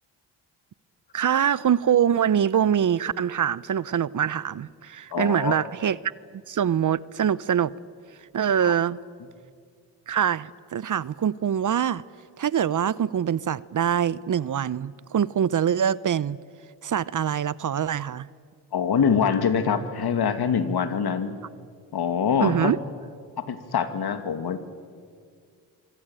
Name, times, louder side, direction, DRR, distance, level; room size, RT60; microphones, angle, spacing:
voice 1, 1.1-6.0 6.5-7.7 8.3-9.0 10.1-12.0 12.4-16.4 16.8-18.3 22.4-22.8, right 9 dB, 45° right, 0.8 m, -24 dB
voice 2, 5.1-5.5 8.6-8.7 18.7-21.4 21.9-22.7 23.4-24.6, left 6 dB, 65° left, 2.5 m, -24 dB
25.5 x 24.0 x 9.0 m
supercardioid pair, 55°, 42 cm